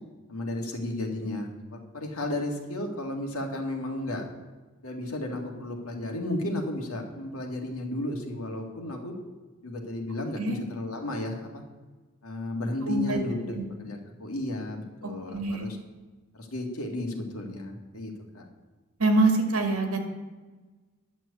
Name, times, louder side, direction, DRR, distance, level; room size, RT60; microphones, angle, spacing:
voice 1, 0.3-4.2 4.8-9.1 9.6-11.6 12.2-15.8 16.3-18.4, left 1 dB, 80° left, 2 dB, 2.0 m, -33 dB
voice 2, 12.8-13.2 13.5-13.6 15.3-15.7 19.0-20.0, right 2 dB, 85° right, 3 dB, 2.1 m, -24 dB
11.0 x 6.1 x 8.3 m, 1.3 s
head